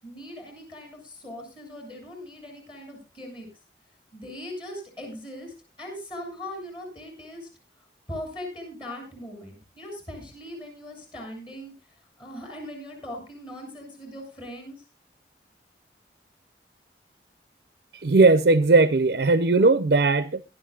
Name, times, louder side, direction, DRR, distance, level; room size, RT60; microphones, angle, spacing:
voice 1, 0.0-3.5 4.1-7.5 8.1-11.7 12.2-14.8, left 1 dB, 30° left, 6.8 m, -40 dB
voice 2, 17.9-20.4, right 3 dB, 60° right, 0.6 m, -18 dB
21.5 x 12.0 x 2.4 m
head